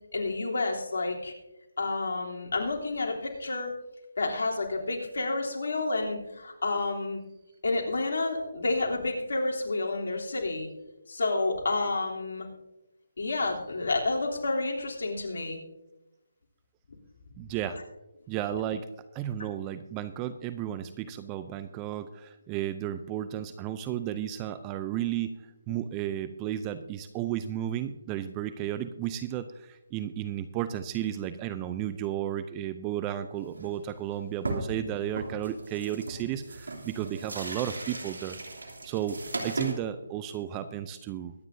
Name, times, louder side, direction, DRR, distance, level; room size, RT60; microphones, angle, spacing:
voice 1, 0.1-1.3 1.8-3.7 4.2-7.2 7.6-10.7 11.1-12.5 13.2-15.6, left 2 dB, 70° left, -1 dB, 3.2 m, -30 dB
voice 2, 17.4-17.8 18.3-25.4 25.7-38.4 38.8-41.3, right 11 dB, 20° right, 12 dB, 0.5 m, -33 dB
sound 1, 33.4-33.8 34.1-34.2 34.4-34.8 35.1-39.7, right 2 dB, 85° right, 2.8 m, -37 dB
23.0 x 9.4 x 2.7 m, 0.97 s
hypercardioid pair, 160°, 0 cm